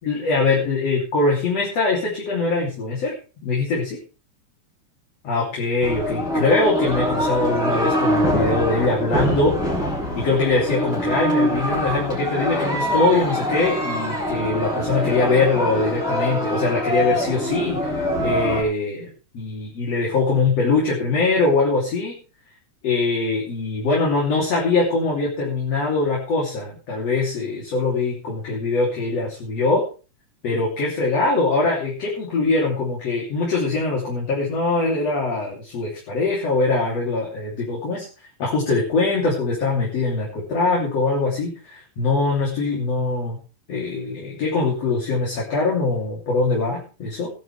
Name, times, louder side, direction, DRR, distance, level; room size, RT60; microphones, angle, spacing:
voice 1, 0.0-3.1 3.4-4.0 5.2-9.6 10.1-22.2 22.8-29.9 30.4-38.1 38.4-43.4 43.7-47.3, left 3 dB, 55° left, -3 dB, 4.2 m, -22 dB
sound 1, 5.8-18.6, equal, 30° left, 5.6 m, -24 dB
17.0 x 11.0 x 3.4 m, 0.34 s
omnidirectional pair, 3.6 m